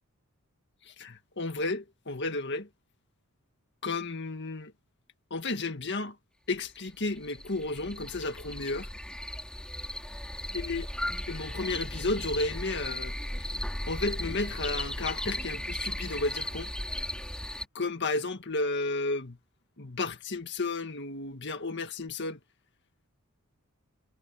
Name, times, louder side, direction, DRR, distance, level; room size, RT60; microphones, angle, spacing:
voice 1, 1.0-2.7 3.8-4.7 5.3-6.1 6.5-8.9 10.5-10.9 11.3-13.1 13.9-16.7 17.7-19.4 19.8-22.4, left 3 dB, 55° left, 1.9 m, -32 dB
sound 1, 6.7-6.8 7.2-17.6, equal, 5° left, 4.1 m, -36 dB
head